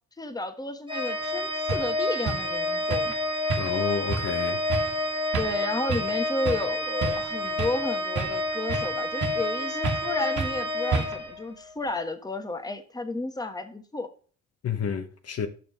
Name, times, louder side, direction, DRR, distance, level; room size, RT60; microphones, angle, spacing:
voice 1, 0.2-3.2 5.3-14.1, left 2 dB, 15° left, 1.2 m, -32 dB
Organ, 0.9-11.7, left 1 dB, 15° right, 1.7 m, -29 dB
sound 1, 1.2-1.3 1.7-1.9 2.3-2.5 2.9-3.2 3.5-3.8 4.1-4.3 4.7-5.0 5.3-5.6 5.9-6.2 6.5-6.7 7.0-7.8 8.2-8.9 9.2-9.5 9.8-10.1 10.4-10.6 10.9-11.3, right 4 dB, 80° right, 1.6 m, -30 dB
voice 2, 3.6-4.6 14.6-15.5, left 6 dB, 55° left, 1.0 m, -29 dB
6.6 x 5.5 x 5.4 m
cardioid pair, 90°, 30 cm